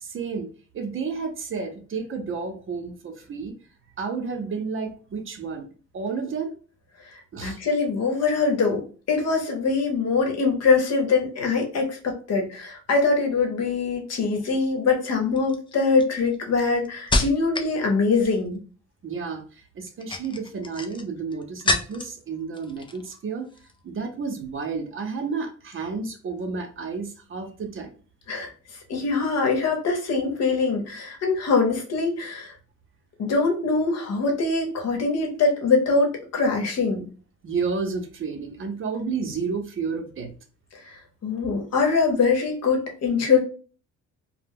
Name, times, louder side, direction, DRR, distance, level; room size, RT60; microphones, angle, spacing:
voice 1, 0.0-3.5 4.0-6.6 7.3-7.6 19.0-23.5 23.8-27.9 37.4-40.3, right 5 dB, 45° right, 5 dB, 0.7 m, -31 dB
voice 2, 7.4-18.6 28.3-28.5 28.9-32.5 33.2-37.0 40.9-41.0 41.2-43.4, left 4 dB, 55° left, 2 dB, 0.9 m, -23 dB
sound 1, 14.3-14.6 15.4-17.8 18.0-18.6 19.8-22.2 22.5-23.2 23.5-23.7, left 2 dB, 15° left, 0.3 m, -29 dB
2.2 x 2.1 x 3.4 m, 0.39 s
cardioid pair, 90°, 30 cm